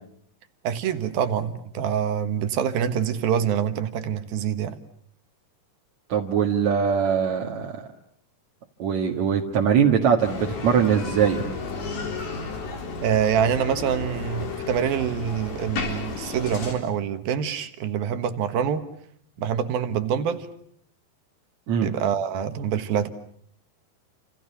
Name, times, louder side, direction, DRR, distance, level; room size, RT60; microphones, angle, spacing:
voice 1, 0.6-4.8 13.0-18.8 19.4-20.5 21.8-23.1, right 8 dB, 80° right, 9 dB, 3.3 m, -25 dB
voice 2, 6.1-7.9 8.8-11.5 21.7-21.9, right 7 dB, 55° right, -1 dB, 2.7 m, -22 dB
Bicycle, 10.2-16.7, left 4 dB, 80° left, 5.8 m, -33 dB
29.5 x 27.5 x 6.9 m, 0.65 s
omnidirectional pair, 4.2 m